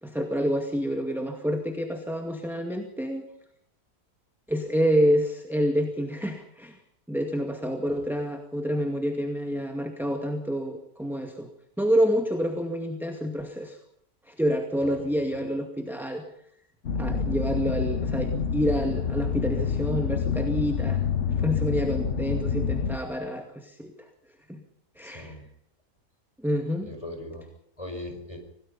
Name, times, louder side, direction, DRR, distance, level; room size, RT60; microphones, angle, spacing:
voice 1, 0.0-3.2 4.5-6.8 7.1-11.5 11.8-13.8 14.3-16.2 16.9-21.0 21.4-23.9 24.5-24.6 25.0-25.4 26.4-26.9, equal, ahead, 4 dB, 2.1 m, -28 dB
sound 1, 16.8-23.0, left 6 dB, 55° left, 1.4 m, -27 dB
voice 2, 25.0-25.4 26.8-27.5 27.8-28.4, left 1 dB, 20° left, 4 dB, 5.3 m, -39 dB
26.5 x 18.5 x 5.6 m, 0.71 s
omnidirectional pair, 1.6 m